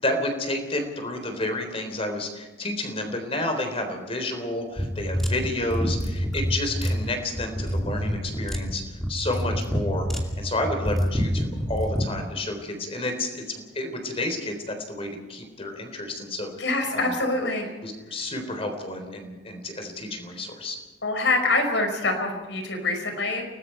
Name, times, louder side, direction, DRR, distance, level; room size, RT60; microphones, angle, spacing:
voice 1, 0.0-16.5 16.9-17.1 17.8-20.8, left 1 dB, 35° left, 5 dB, 3.8 m, -30 dB
sound 1, 4.8-12.1, equal, ahead, 2.6 m, -27 dB
voice 2, 16.6-17.7 21.0-23.4, left 2 dB, 80° left, 4 dB, 5.3 m, -25 dB
29.5 x 19.5 x 4.6 m, 1.2 s
head